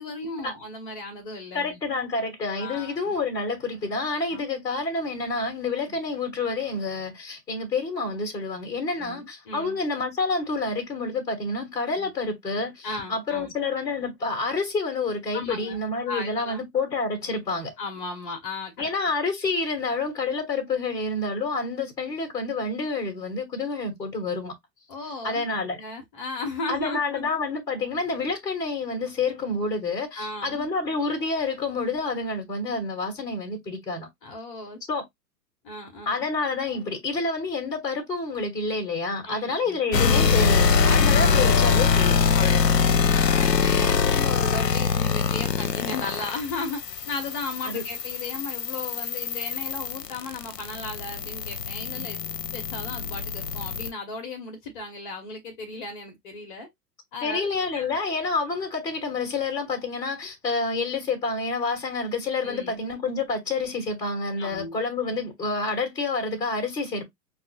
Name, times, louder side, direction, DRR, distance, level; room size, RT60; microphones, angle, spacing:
voice 1, 0.0-1.8 2.6-3.2 4.3-4.4 5.9-6.0 9.0-9.8 12.0-12.1 12.8-13.5 15.3-15.8 16.1-16.6 17.8-18.9 24.9-25.4 25.7-27.2 30.1-30.7 34.2-34.8 35.6-36.2 39.2-39.8 43.1-52.2 52.5-56.7 57.1-58.0 62.4-62.8 64.4-64.8, left 3 dB, 30° left, 0.8 m, -36 dB
voice 2, 1.5-17.7 18.8-24.5 25.2-25.8 26.7-34.1 34.9-35.0 36.1-42.7 47.6-47.8 51.9-52.1 57.2-67.0, left 3 dB, 5° left, 0.9 m, -28 dB
sound 1, 39.9-53.9, left 5 dB, 80° left, 0.6 m, -23 dB
5.5 x 2.4 x 2.6 m
figure-of-eight pair, 105°, 49 cm